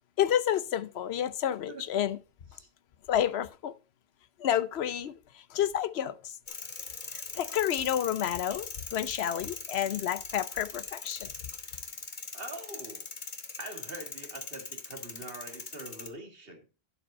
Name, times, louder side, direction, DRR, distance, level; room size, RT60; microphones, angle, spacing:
voice 1, 0.2-2.2 3.1-3.7 4.4-6.4 7.1-11.3, left 10 dB, 85° left, 0.9 m, -30 dB
sound 1, 6.5-16.1, left 4 dB, 50° left, 1.4 m, -41 dB
voice 2, 12.3-13.1 13.6-16.6, right 2 dB, 65° right, 2.2 m, -44 dB
11.5 x 5.1 x 5.4 m
omnidirectional pair, 1.0 m